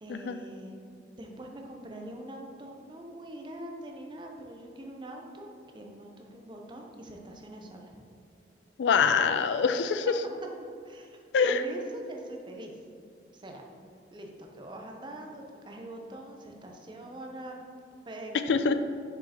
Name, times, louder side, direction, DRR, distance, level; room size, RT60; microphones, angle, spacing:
voice 1, 0.0-0.8 1.1-7.9 9.1-9.2 10.8-12.8 13.3-13.6 14.1-17.6 18.1-18.6, right 1 dB, 25° right, 1 dB, 0.6 m, -43 dB
voice 2, 8.8-10.1 11.3-11.6 18.5-18.8, left 5 dB, 85° left, 10 dB, 0.3 m, -24 dB
6.3 x 5.2 x 2.9 m, 2.4 s
head